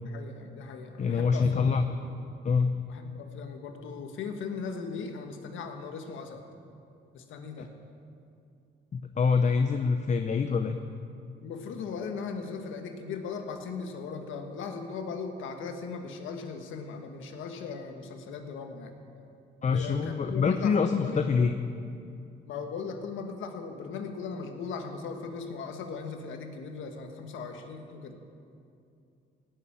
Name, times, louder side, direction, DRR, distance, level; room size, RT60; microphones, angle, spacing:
voice 1, 0.0-1.7 2.8-6.4 7.1-7.7 11.4-18.9 19.6-21.3 22.5-28.2, left 5 dB, 80° left, 5 dB, 1.6 m, -38 dB
voice 2, 1.0-1.8 2.4-2.7 7.6-7.7 8.9-10.8 19.6-21.5, left 5 dB, 35° left, 7 dB, 0.7 m, -25 dB
17.5 x 7.0 x 8.9 m, 2.5 s
cardioid pair, 90°, 20 cm